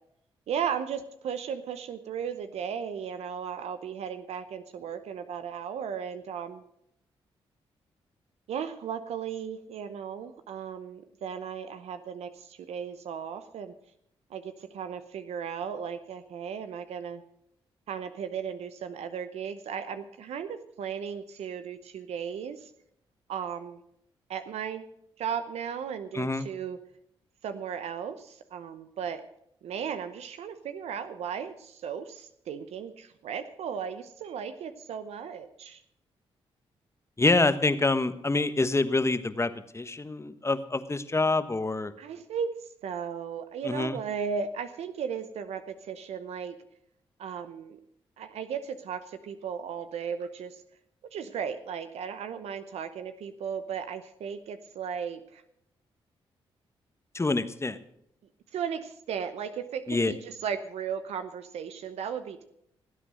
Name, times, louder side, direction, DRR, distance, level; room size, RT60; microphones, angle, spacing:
voice 1, 0.5-6.6 8.5-13.7 14.3-17.2 17.9-22.7 23.3-23.8 24.3-24.9 25.2-26.8 27.4-29.2 29.6-35.8 42.0-42.5 42.8-46.6 47.2-47.8 48.2-50.5 51.1-55.4 58.5-62.4, right 7 dB, 80° right, 10 dB, 0.8 m, -36 dB
voice 2, 26.1-26.5 37.2-41.9 43.6-44.0 57.1-57.8 59.9-60.1, left 3 dB, 25° left, 12 dB, 1.2 m, -26 dB
17.5 x 8.3 x 6.3 m, 0.74 s
supercardioid pair, 55°, 11 cm